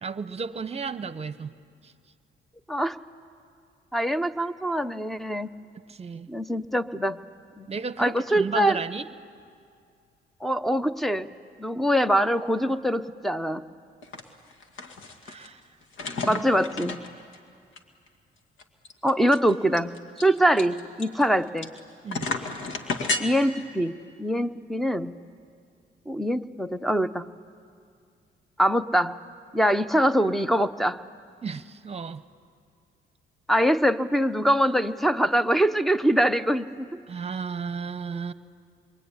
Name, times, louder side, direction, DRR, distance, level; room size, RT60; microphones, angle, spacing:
voice 1, 0.0-1.5 1.8-1.9 5.9-6.3 7.7-9.1 15.2-15.6 16.2-16.4 16.8-16.9 22.0-22.3 31.4-32.2 37.1-38.3, right 5 dB, 30° right, 13 dB, 1.0 m, -33 dB
voice 2, 3.9-5.5 6.3-7.2 7.6-7.7 8.0-8.8 10.4-11.3 11.6-13.6 16.2-17.0 19.0-21.7 23.2-25.2 26.1-27.3 28.6-29.2 29.5-31.0 33.5-36.9, equal, ahead, 13 dB, 0.8 m, -24 dB
sound 1, 14.0-14.2 14.5-15.5 15.9-17.4 17.8-17.9 18.1-18.2 18.6-21.8 22.1-23.2, left 3 dB, 75° left, 2.1 m, -32 dB
26.0 x 23.0 x 9.7 m, 2.3 s
cardioid pair, 90°, 20 cm